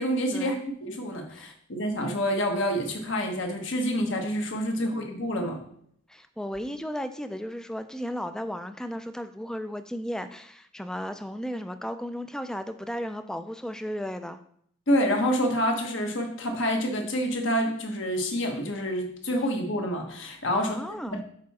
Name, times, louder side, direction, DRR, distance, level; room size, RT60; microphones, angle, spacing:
voice 1, 0.0-0.6 0.8-5.6 14.9-20.8 21.1-21.2, equal, 65° left, 2 dB, 1.2 m, -27 dB
voice 2, 6.1-14.4 20.5-21.2, equal, 5° left, 9 dB, 0.3 m, -35 dB
6.5 x 4.7 x 4.1 m, 0.67 s
head